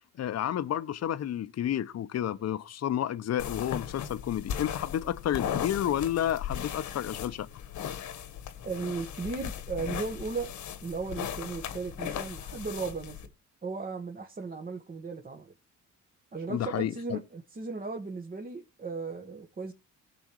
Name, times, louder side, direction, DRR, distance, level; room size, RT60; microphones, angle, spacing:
voice 1, 0.2-7.5 16.5-17.2, left 11 dB, 55° left, 0.8 m, -31 dB
sound 1, 3.4-13.3, left 9 dB, 80° left, 1.4 m, -37 dB
voice 2, 8.6-10.5 10.8-13.3 13.6-15.5 16.3-19.7, right 4 dB, 30° right, 1.3 m, -36 dB
17.5 x 6.9 x 3.1 m
cardioid pair, 90°, 30 cm